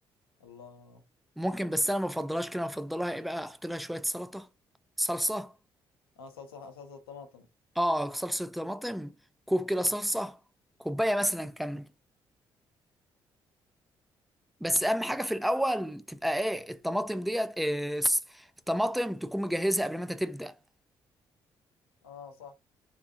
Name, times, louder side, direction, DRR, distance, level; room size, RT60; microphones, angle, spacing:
voice 1, 0.4-1.0 6.2-7.5 22.0-22.5, left 5 dB, 85° left, 0.6 m, -47 dB
voice 2, 1.4-4.5 5.0-5.5 7.8-9.2 9.5-10.4 10.8-11.9 14.6-20.5, equal, ahead, 0.3 m, -30 dB
3.7 x 2.4 x 2.5 m
hypercardioid pair, 45°, 12 cm